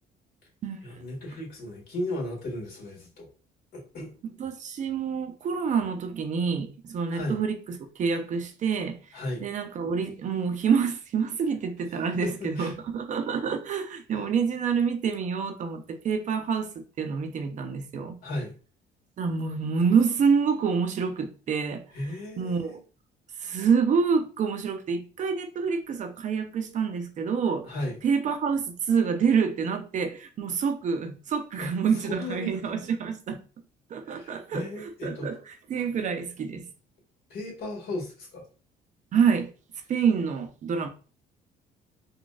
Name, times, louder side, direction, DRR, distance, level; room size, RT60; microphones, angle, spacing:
voice 1, 0.8-3.3 3.7-4.1 7.1-7.4 9.1-9.4 12.2-12.7 18.2-18.5 21.9-22.8 27.6-28.0 31.6-32.5 34.1-35.3 37.3-38.4, left 1 dB, 65° left, 1.7 m, -35 dB
voice 2, 4.2-18.2 19.2-21.8 22.4-22.8 23.4-27.7 28.0-33.4 33.9-34.7 35.0-35.4 35.7-36.7 39.1-39.5 39.9-40.9, right 6 dB, 45° right, 0.5 m, -27 dB
4.0 x 2.3 x 2.3 m
cardioid pair, 110°, 17 cm